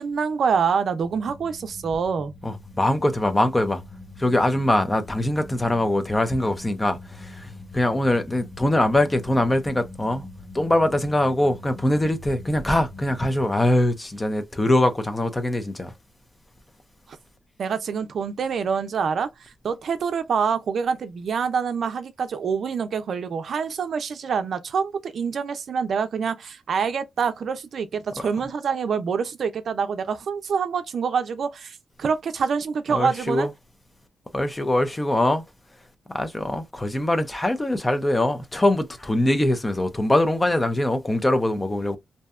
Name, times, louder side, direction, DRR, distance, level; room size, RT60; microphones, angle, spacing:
voice 1, 0.0-2.3 17.6-33.5, right 6 dB, 70° right, 0.4 m, -26 dB
sound 1, 1.0-13.7, left 2 dB, 85° left, 1.0 m, -43 dB
voice 2, 2.4-3.8 4.2-10.2 10.5-15.9 32.9-33.5 34.3-35.4 36.1-42.0, left 1 dB, 20° left, 0.5 m, -22 dB
2.6 x 2.1 x 2.3 m
cardioid pair, 105°, 0 cm